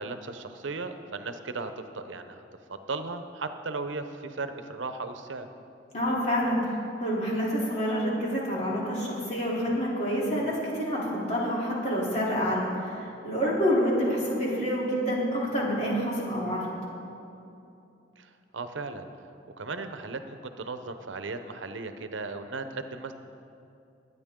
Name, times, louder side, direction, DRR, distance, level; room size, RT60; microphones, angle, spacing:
voice 1, 0.0-2.4 2.7-5.5 18.2-19.1 19.6-23.1, right 3 dB, 85° right, 8 dB, 0.8 m, -36 dB
voice 2, 5.9-16.7, equal, 40° left, -6 dB, 3.4 m, -28 dB
21.5 x 9.5 x 3.7 m, 2.7 s
head